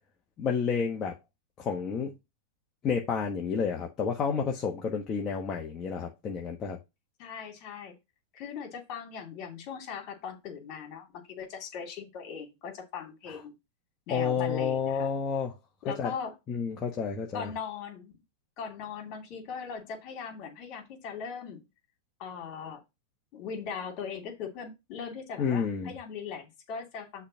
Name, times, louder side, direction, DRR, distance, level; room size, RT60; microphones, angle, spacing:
voice 1, 0.4-1.1 1.6-2.1 2.8-6.8 14.1-15.5 16.0-16.1 16.5-17.5 25.4-25.9, left 6 dB, 30° left, 1.3 m, -30 dB
voice 2, 7.2-7.9 8.3-13.5 14.1-15.1 15.8-16.3 17.3-18.2 18.6-21.7 22.2-22.8 23.3-27.3, left 6 dB, 45° left, 2.6 m, -39 dB
6.5 x 3.5 x 6.2 m
hypercardioid pair, 125°, 0 cm